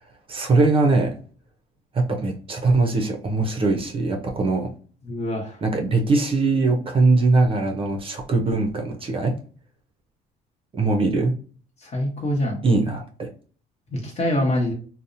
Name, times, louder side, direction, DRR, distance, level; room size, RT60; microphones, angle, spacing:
voice 1, 0.3-1.2 1.9-4.7 5.6-9.3 10.7-11.3 12.6-13.3, right 3 dB, 35° right, 3 dB, 0.5 m, -21 dB
voice 2, 5.1-5.6 10.8-10.9 11.8-12.6 13.9-14.7, left 1 dB, 40° left, 1 dB, 1.0 m, -25 dB
2.7 x 2.0 x 2.5 m, 0.42 s
cardioid pair, 110°, 17 cm